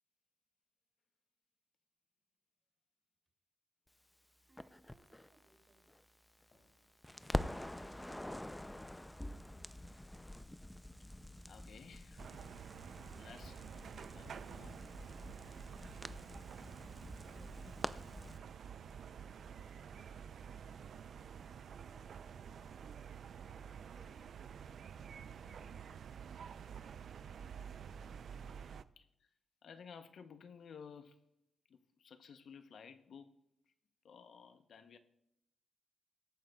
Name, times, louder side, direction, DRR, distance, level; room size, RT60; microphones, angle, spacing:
voice 1, 4.4-6.0 17.2-18.4 21.6-23.3 23.7-25.0 25.5-26.2 26.5-27.2, right 2 dB, 30° right, 2.4 m, -69 dB
Crackle, 4.6-6.7 7.0-18.4, left 1 dB, 5° left, 0.4 m, -46 dB
sound 1, 6.5-10.2, left 2 dB, 40° left, 4.1 m, -72 dB
voice 2, 11.5-12.3 13.1-13.6 14.1-14.9 29.0-29.3 29.6-31.2 31.7-33.3 34.0-35.0, left 6 dB, 65° left, 0.7 m, -55 dB
sound 2, 12.2-28.8, right 7 dB, 65° right, 0.4 m, -50 dB
21.5 x 8.8 x 2.3 m
cardioid pair, 120°, 0 cm